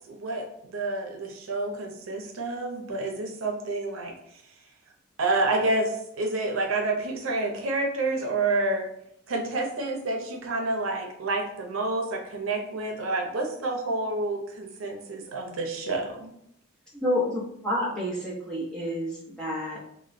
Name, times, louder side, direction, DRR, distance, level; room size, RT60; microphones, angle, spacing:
voice 1, 0.1-4.1 5.2-8.9 9.3-16.3, right 2 dB, 85° right, 2 dB, 0.6 m, -29 dB
voice 2, 16.9-19.8, left 1 dB, 5° left, -7 dB, 0.7 m, -29 dB
3.0 x 2.1 x 2.5 m, 0.73 s
head